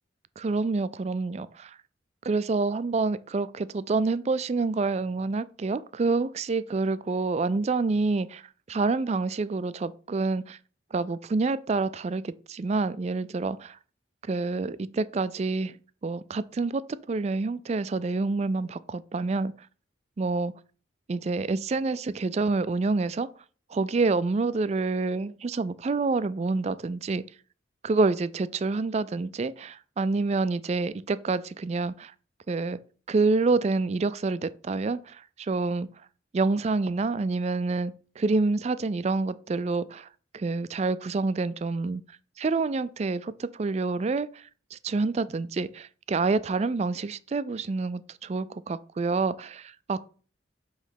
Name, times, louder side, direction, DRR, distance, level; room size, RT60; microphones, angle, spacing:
voice 1, 0.4-1.8 2.2-8.4 8.7-10.6 10.9-13.8 14.3-15.7 16.0-16.8 17.1-19.5 20.2-20.5 21.1-23.3 23.7-27.2 27.8-32.1 32.5-32.8 33.1-35.9 36.3-40.1 40.3-42.0 42.4-50.0, right 3 dB, 35° right, 0.3 m, -27 dB
8.1 x 3.1 x 5.7 m
head